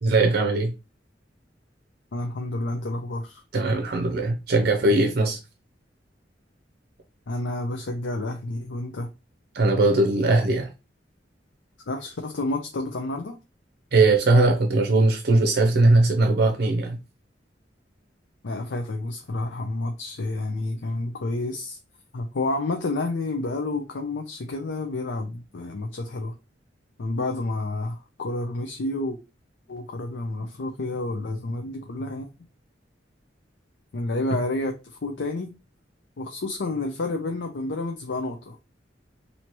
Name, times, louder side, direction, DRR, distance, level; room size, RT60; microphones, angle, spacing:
voice 1, 0.0-0.7 3.5-5.4 9.5-10.7 13.9-17.0, right 2 dB, 60° right, 0.6 m, -20 dB
voice 2, 2.1-3.4 7.3-9.1 11.9-13.4 18.4-21.8 22.1-26.3 27.0-29.2 29.7-32.3 33.9-35.5 36.2-38.6, left 2 dB, 80° left, 0.6 m, -30 dB
4.5 x 2.8 x 2.9 m
head